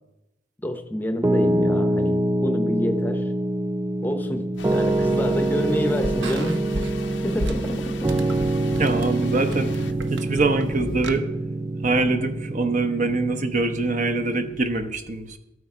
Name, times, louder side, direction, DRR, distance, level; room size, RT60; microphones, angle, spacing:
voice 1, 0.6-3.3 4.0-6.9 7.2-8.0, equal, 10° left, 7 dB, 0.8 m, -28 dB
Piano, 1.2-14.6, right 1 dB, 15° right, 0.3 m, -25 dB
sound 1, 4.5-11.2, right 1 dB, 75° right, 0.9 m, -36 dB
sound 2, 4.6-9.9, left 4 dB, 75° left, 0.7 m, -38 dB
voice 2, 8.8-11.3 11.8-15.4, right 3 dB, 45° right, 8 dB, 0.9 m, -24 dB
13.0 x 8.4 x 4.9 m, 0.96 s
head